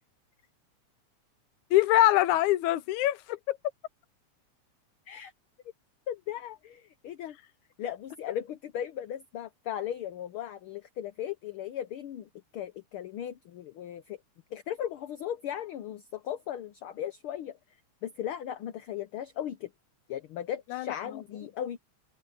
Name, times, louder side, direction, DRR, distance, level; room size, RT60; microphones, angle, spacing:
voice 1, 1.7-3.6 20.7-21.2, left 15 dB, 85° left, 2.2 m, -24 dB
voice 2, 6.1-7.4 7.8-14.2 14.5-17.6 18.0-19.7 20.1-21.8, left 10 dB, 70° left, 1.3 m, -37 dB
omnidirectional pair, 3.3 m